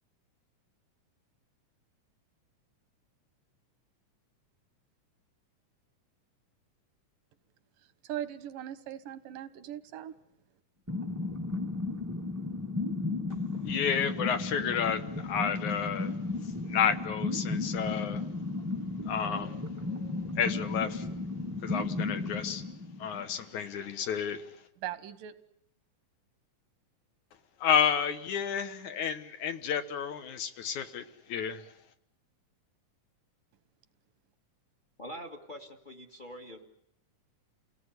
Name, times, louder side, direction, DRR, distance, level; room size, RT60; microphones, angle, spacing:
voice 1, 8.0-10.1 24.8-25.4, right 12 dB, 90° right, 12 dB, 2.9 m, -39 dB
sound 1, 10.9-23.5, left 3 dB, 25° right, 0.3 m, -34 dB
voice 2, 13.6-16.1 16.7-18.2 19.1-19.6 20.0-21.1 21.6-22.6 23.0-24.4 27.6-31.6, left 7 dB, 70° left, 9 dB, 2.7 m, -31 dB
voice 3, 35.0-36.7, equal, 20° left, 5 dB, 1.3 m, -44 dB
29.5 x 18.0 x 9.8 m, 0.75 s
omnidirectional pair, 3.7 m